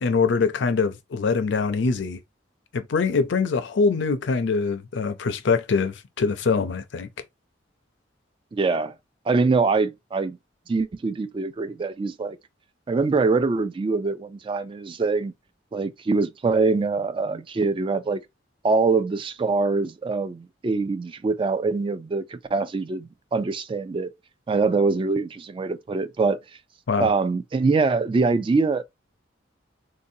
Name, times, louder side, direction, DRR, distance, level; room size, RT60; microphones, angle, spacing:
voice 1, 0.0-2.2 2.7-7.1 26.9-27.1, left 4 dB, 65° left, 0.5 m, -23 dB
voice 2, 8.5-8.9 9.3-10.4 10.7-12.4 12.9-15.3 15.7-18.2 18.6-24.1 24.5-26.4 27.0-28.8, right 4 dB, 25° right, 0.3 m, -24 dB
3.8 x 2.6 x 2.7 m
head